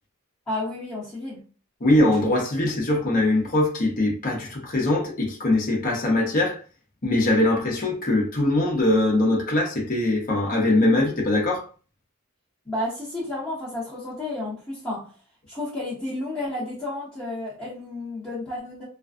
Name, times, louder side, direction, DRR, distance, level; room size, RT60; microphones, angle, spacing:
voice 1, 0.5-1.4 12.6-15.1 15.5-18.8, left 1 dB, 10° left, 1.0 m, -31 dB
voice 2, 1.8-6.6 7.0-11.7, left 1 dB, 40° left, 0.7 m, -22 dB
2.5 x 2.2 x 2.4 m
head